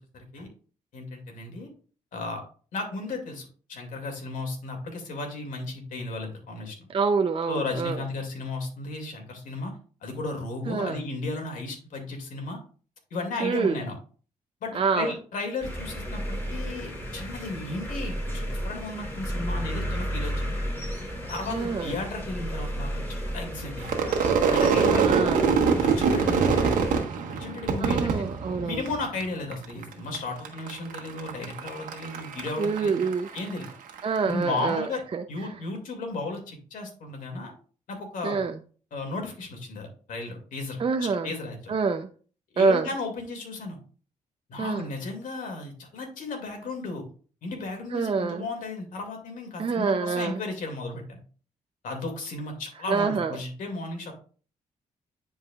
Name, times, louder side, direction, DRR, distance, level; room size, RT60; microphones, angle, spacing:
voice 1, 0.1-0.5 0.9-1.7 2.1-2.4 2.7-6.9 7.4-9.7 10.0-12.6 13.1-14.0 14.6-20.6 21.3-23.9 24.5-25.4 25.8-26.9 27.3-28.2 28.6-33.0 33.3-33.7 34.3-35.0 35.3-37.5 37.9-38.4 38.9-41.7 42.5-43.8 44.5-47.0 47.4-51.2 51.8-54.1, left 3 dB, 75° left, 2 dB, 2.4 m, -34 dB
voice 2, 6.9-8.0 10.7-11.0 13.4-13.8 14.7-15.1 21.5-21.9 24.9-25.4 27.8-28.8 32.6-33.3 34.0-35.2 38.2-38.5 40.8-41.3 41.7-42.1 42.6-42.9 44.6-44.9 47.9-48.4 49.6-50.4 52.9-53.3, right 5 dB, 40° right, 6 dB, 0.6 m, -26 dB
sound 1, 15.6-27.0, equal, 15° left, 3.6 m, -33 dB
Crowd / Fireworks, 23.8-29.2 29.5-30.2 30.4-34.0, right 5 dB, 80° right, 1.3 m, -24 dB
10.0 x 4.7 x 2.4 m, 0.40 s
cardioid pair, 65°, 14 cm